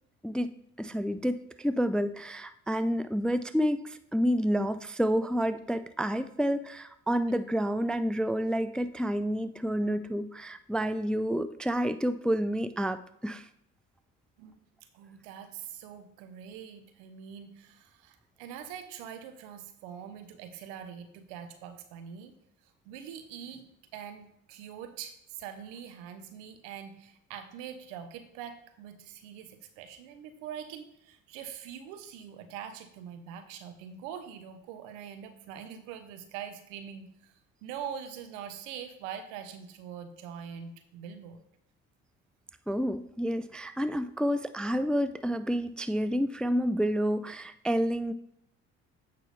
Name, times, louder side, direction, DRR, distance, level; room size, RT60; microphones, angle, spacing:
voice 1, 0.2-13.5 42.7-48.1, equal, 5° left, 12 dB, 0.3 m, -29 dB
voice 2, 14.9-22.3 22.9-37.3 37.6-41.4, right 8 dB, 80° right, 9 dB, 1.0 m, -43 dB
8.4 x 5.8 x 3.3 m, 0.77 s
hypercardioid pair, 65°, 37 cm